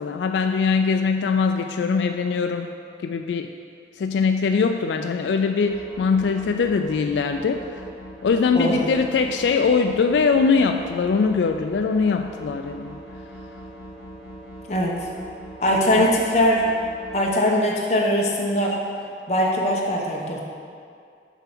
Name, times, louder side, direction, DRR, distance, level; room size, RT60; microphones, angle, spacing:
voice 1, 0.0-2.7 3.0-3.5 4.0-7.8 8.2-13.0 16.0-16.1, left 5 dB, 85° left, 5 dB, 0.3 m, -22 dB
sound 1, 5.6-17.2, right 1 dB, 5° right, 1.5 m, -41 dB
voice 2, 8.5-8.9 14.7-14.9 15.6-16.7 17.1-18.8 19.3-20.4, equal, 40° left, -2 dB, 1.0 m, -21 dB
6.9 x 4.5 x 5.9 m, 2.3 s
head